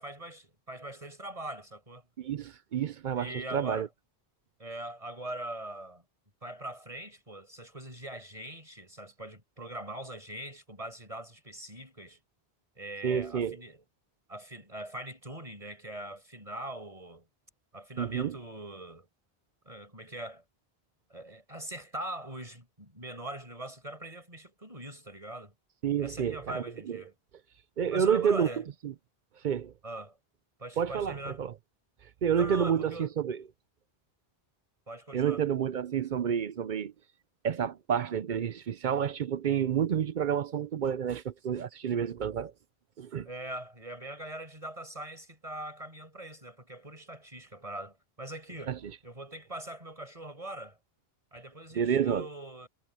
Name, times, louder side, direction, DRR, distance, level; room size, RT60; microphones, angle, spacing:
voice 1, 0.0-2.1 3.1-3.9 4.6-6.0 6.4-12.2 12.8-13.8 14.3-17.3 17.7-19.1 19.6-20.4 21.1-25.5 26.0-27.2 27.9-28.7 29.8-30.2 30.6-31.4 32.3-33.2 34.9-35.4 43.2-50.8 51.3-52.7, right 1 dB, 35° right, 6.5 m, -42 dB
voice 2, 2.2-3.9 13.0-13.6 18.0-18.4 25.8-27.0 27.8-28.5 29.4-29.7 30.8-31.5 32.2-33.4 35.1-36.9 37.4-42.5 43.0-43.3 48.7-48.8 51.8-52.3, right 8 dB, 55° right, 0.7 m, -29 dB
omnidirectional pair, 1.1 m